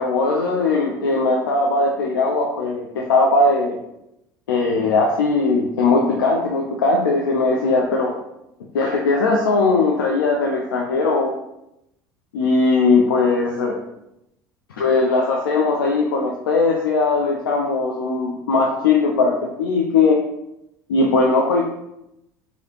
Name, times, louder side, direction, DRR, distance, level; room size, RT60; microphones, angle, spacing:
voice 1, 0.0-3.8 4.5-8.2 8.7-11.3 12.3-13.7 14.7-20.2 20.9-21.6, left 3 dB, 80° left, 0 dB, 0.4 m, -19 dB
3.1 x 2.7 x 2.9 m, 0.85 s
hypercardioid pair, 70°, 11 cm